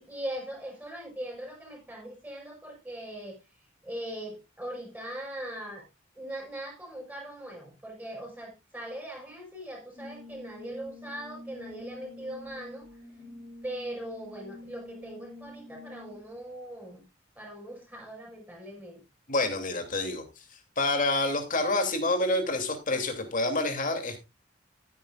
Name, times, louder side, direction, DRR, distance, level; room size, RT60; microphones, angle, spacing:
voice 1, 0.0-3.4 3.8-5.9 6.2-12.9 13.6-17.0 17.4-19.0, right 1 dB, 10° right, 5.8 m, -40 dB
Brass instrument, 10.0-16.4, left 2 dB, 25° left, 3.9 m, -47 dB
voice 2, 19.3-20.2 20.8-24.2, left 2 dB, 45° left, 3.0 m, -27 dB
15.0 x 9.5 x 2.5 m
head